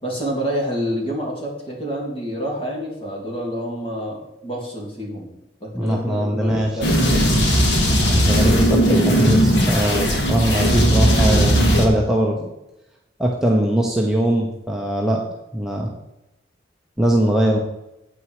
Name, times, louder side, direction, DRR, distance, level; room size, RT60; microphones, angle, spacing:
voice 1, 0.0-5.3 5.6-7.3, equal, 30° left, -2 dB, 2.9 m, -28 dB
voice 2, 5.7-6.8 8.1-12.5 13.2-15.3 15.5-15.9 17.0-17.6, right 1 dB, 5° right, -1 dB, 0.9 m, -21 dB
sound 1, 6.8-11.9, equal, 80° left, 2.1 m, -17 dB
9.2 x 8.3 x 4.8 m, 0.92 s
head